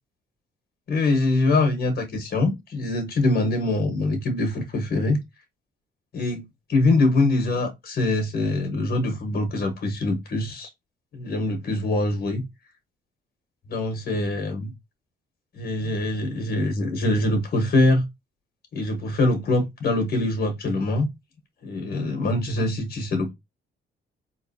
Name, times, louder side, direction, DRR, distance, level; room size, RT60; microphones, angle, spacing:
voice 1, 0.9-5.2 6.1-6.4 6.7-10.7 11.1-12.4 13.7-14.7 15.5-18.0 18.7-21.1 21.6-23.3, left 2 dB, 55° left, 1.2 m, -23 dB
3.9 x 3.0 x 2.7 m
cardioid pair, 90°, 20 cm